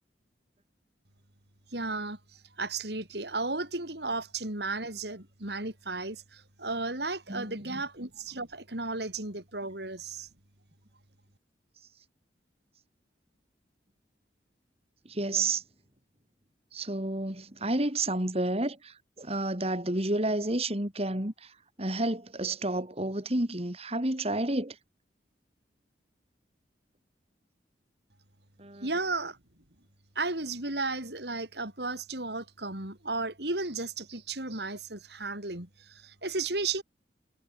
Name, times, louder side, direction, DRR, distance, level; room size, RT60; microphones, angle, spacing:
voice 1, 1.7-10.3 28.8-29.4 30.2-36.8, right 3 dB, 65° right, 5.5 m, -34 dB
voice 2, 7.3-7.8 15.1-15.6 16.7-21.5 21.8-24.8 28.6-28.9, right 2 dB, 35° right, 3.7 m, -30 dB
head